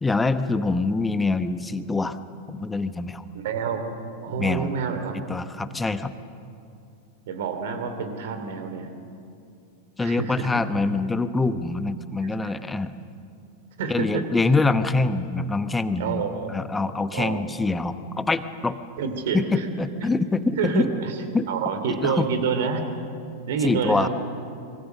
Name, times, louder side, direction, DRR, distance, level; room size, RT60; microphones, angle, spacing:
voice 1, 0.0-2.2 2.5-3.2 4.4-4.7 5.1-6.1 10.0-12.9 13.9-16.2 16.5-18.8 19.3-20.9 21.3-21.5 21.9-22.3 23.6-24.1, left 3 dB, 10° left, 12 dB, 1.0 m, -25 dB
voice 2, 3.3-3.8 4.2-5.2 7.3-8.9 10.0-10.5 12.4-12.5 13.8-14.3 16.0-16.5 17.1-17.4 19.0-19.7 20.0-20.1 20.6-21.1 21.5-22.9 23.5-24.1, right 6 dB, 55° right, 8 dB, 2.8 m, -28 dB
25.0 x 23.5 x 6.8 m, 2.6 s
figure-of-eight pair, 90°, 0 cm